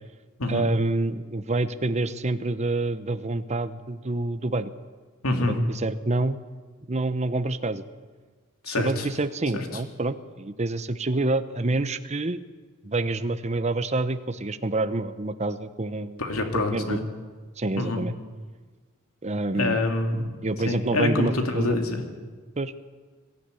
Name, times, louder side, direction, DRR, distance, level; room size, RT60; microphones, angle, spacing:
voice 1, 0.5-4.7 5.4-6.4 6.9-7.8 8.7-12.4 12.8-16.2 16.5-17.0 17.6-18.1 19.2-19.8 20.4-21.8 22.6-22.7, right 2 dB, 30° right, 11 dB, 0.8 m, -27 dB
voice 2, 5.2-5.6 8.6-9.1 9.5-9.6 16.2-17.0 17.8-18.0 19.6-20.2 20.7-22.0, left 2 dB, 85° left, 4 dB, 2.8 m, -26 dB
21.5 x 13.5 x 9.7 m, 1.4 s
head